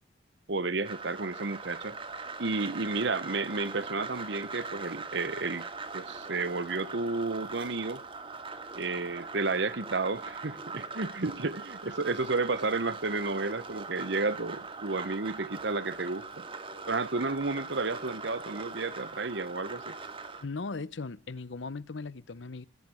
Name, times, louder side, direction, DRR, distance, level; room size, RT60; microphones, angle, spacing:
voice 1, 0.5-2.0 2.4-5.7 5.9-8.0 8.7-16.5 16.9-20.0, right 3 dB, 65° right, 1.1 m, -32 dB
sound 1, 0.8-20.4, right 4 dB, 30° right, 1.6 m, -41 dB
voice 2, 20.4-22.7, left 3 dB, 75° left, 0.8 m, -38 dB
20.0 x 11.5 x 4.5 m
head